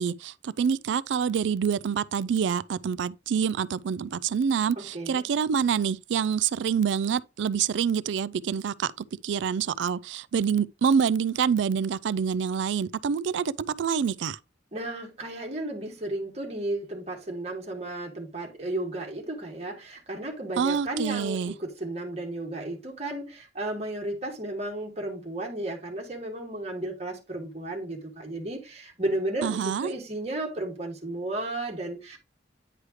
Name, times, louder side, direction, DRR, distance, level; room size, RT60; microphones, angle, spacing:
voice 1, 0.0-14.4 20.6-21.5 29.4-29.9, right 7 dB, 85° right, 0.4 m, -26 dB
voice 2, 4.8-5.2 14.7-32.2, right 1 dB, 35° right, 1.9 m, -33 dB
9.6 x 4.9 x 3.1 m
head